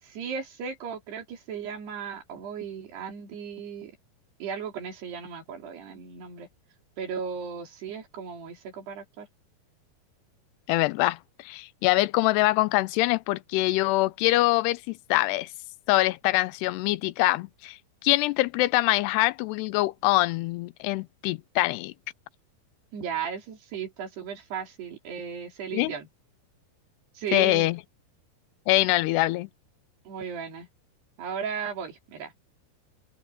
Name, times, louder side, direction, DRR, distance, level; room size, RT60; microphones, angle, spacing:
voice 1, 0.0-4.0 4.4-6.5 7.0-9.3 22.9-26.1 27.2-27.7 30.1-30.7 31.2-32.3, right 7 dB, 80° right, 5.7 m, -36 dB
voice 2, 10.7-15.5 15.9-21.9 25.7-25.9 27.3-27.8 28.7-29.5, left 19 dB, 85° left, 2.8 m, -24 dB
open air
omnidirectional pair, 4.7 m